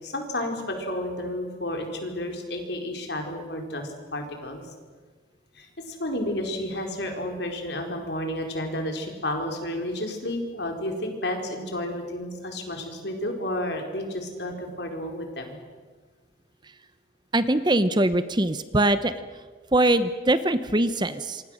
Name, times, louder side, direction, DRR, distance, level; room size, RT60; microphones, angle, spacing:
voice 1, 0.0-4.6 5.5-15.6, left 1 dB, 60° left, 3 dB, 4.4 m, -31 dB
voice 2, 17.3-19.1 19.7-21.4, right 1 dB, 25° right, 12 dB, 0.8 m, -22 dB
27.0 x 25.5 x 6.5 m, 1.4 s
head